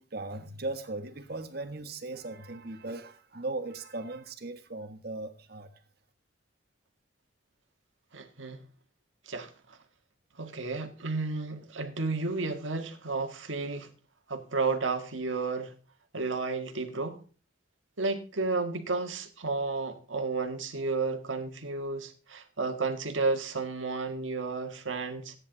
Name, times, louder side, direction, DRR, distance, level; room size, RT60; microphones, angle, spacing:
voice 1, 0.0-5.7, right 2 dB, 55° right, 1.5 m, -38 dB
voice 2, 8.1-8.6 9.3-9.8 10.4-13.9 14.3-15.7 16.1-17.2 18.0-25.3, right 3 dB, 90° right, 1.8 m, -32 dB
14.0 x 9.9 x 4.0 m
head